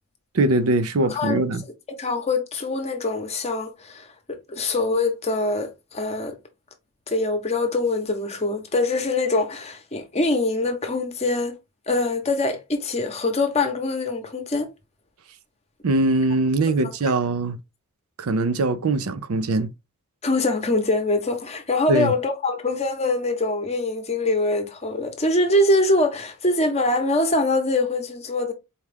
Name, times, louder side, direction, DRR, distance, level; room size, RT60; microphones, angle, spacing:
voice 1, 0.3-1.6 15.8-17.6 18.2-19.7 21.9-22.1, right 2 dB, 70° right, 0.5 m, -22 dB
voice 2, 1.0-1.4 1.9-6.3 7.1-11.6 11.9-14.7 20.2-28.5, left 2 dB, 30° left, 0.8 m, -23 dB
4.3 x 2.4 x 3.3 m
head